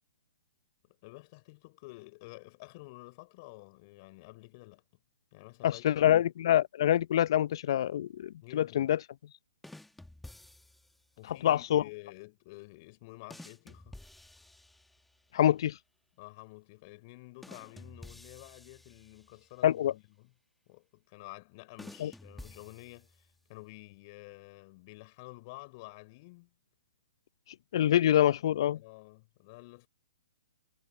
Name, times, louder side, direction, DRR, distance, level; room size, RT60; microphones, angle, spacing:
voice 1, 0.9-4.8 5.3-6.2 8.4-8.9 11.2-14.0 16.2-20.3 20.7-26.5 27.8-27.9 28.7-29.9, left 24 dB, 40° left, 6.2 m, -50 dB
voice 2, 5.6-9.0 11.3-11.8 15.3-15.8 19.6-19.9 22.0-22.1 27.7-28.8, left 11 dB, 55° left, 0.6 m, -26 dB
sound 1, 9.6-11.0 13.3-15.3 17.4-19.6 21.8-23.4, left 1 dB, 5° left, 1.8 m, -51 dB
hypercardioid pair, 125°, 3 cm